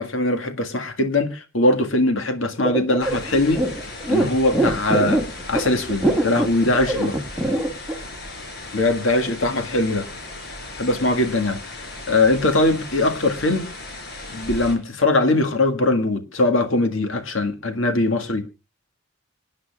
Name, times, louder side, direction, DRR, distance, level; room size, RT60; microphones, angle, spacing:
voice 1, 0.0-3.6 4.1-5.2 5.5-7.2 8.7-10.1 10.7-11.6 12.1-13.7 14.3-18.4, left 2 dB, 70° left, 1.8 m, -21 dB
sound 1, 2.6-8.0, right 1 dB, 5° left, 1.8 m, -22 dB
sound 2, 3.0-14.8, left 2 dB, 50° left, 4.7 m, -36 dB
26.5 x 9.6 x 2.4 m
head